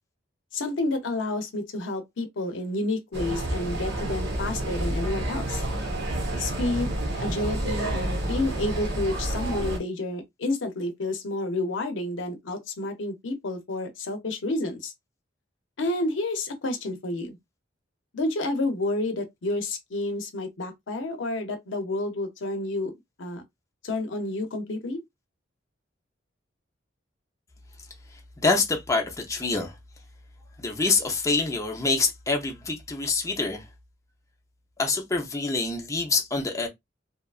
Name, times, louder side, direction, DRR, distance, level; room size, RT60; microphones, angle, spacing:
voice 1, 0.5-5.6 6.4-14.9 15.8-17.4 18.1-22.9 23.2-23.4 23.8-25.0, left 2 dB, 75° left, 0.6 m, -30 dB
sound 1, 3.1-9.8, right 1 dB, 60° right, 1.0 m, -29 dB
voice 2, 28.4-29.7 30.6-33.6 34.8-36.7, left 3 dB, 15° left, 0.5 m, -26 dB
2.8 x 2.3 x 2.3 m
head